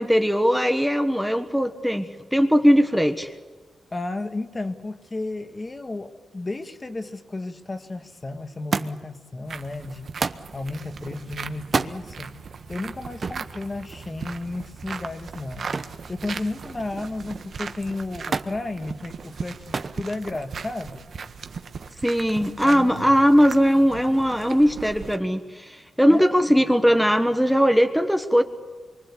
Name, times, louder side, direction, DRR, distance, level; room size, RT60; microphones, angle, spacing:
voice 1, 0.0-3.3 22.0-28.4, equal, ahead, 6 dB, 1.2 m, -19 dB
voice 2, 3.9-10.1 10.5-12.3 12.7-15.7 16.1-21.1 22.6-22.9 26.1-26.3, left 2 dB, 25° left, 8 dB, 1.5 m, -33 dB
Thump thud, 8.7-9.2 10.2-10.5 11.6-12.0 13.2-13.5 15.7-16.0 16.4-17.0 18.3-18.6 19.7-20.0 20.9-21.4 22.4-22.5, right 4 dB, 40° right, 0.9 m, -28 dB
sound 1, 9.5-25.2, right 5 dB, 60° right, 1.4 m, -38 dB
26.0 x 24.5 x 8.3 m, 1.4 s
wide cardioid pair, 125°, 0 cm